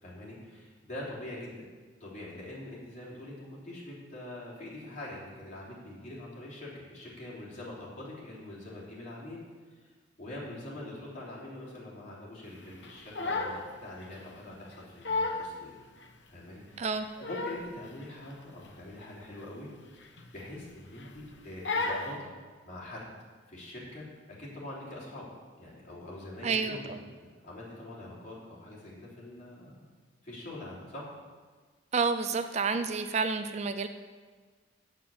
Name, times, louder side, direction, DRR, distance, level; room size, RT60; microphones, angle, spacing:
voice 1, 0.0-1.7 2.0-9.4 9.7-9.9 10.2-15.7 16.3-22.3 22.6-23.1 23.5-25.3 25.6-29.8 30.2-31.1 32.4-32.8, left 1 dB, 40° left, -6 dB, 3.5 m, -44 dB
Crying sobbing, 12.8-13.7 14.0-14.2 14.7-14.8 15.0-15.5 16.0-16.1 16.9-17.7 18.0-18.3 18.6-18.7 19.1-19.3 20.1-20.6 21.0-21.2 21.6-22.2, left 3 dB, 65° left, 1.0 m, -33 dB
voice 2, 26.4-26.8 31.9-33.9, right 4 dB, 35° right, 10 dB, 0.4 m, -29 dB
7.6 x 7.3 x 8.5 m, 1.5 s
head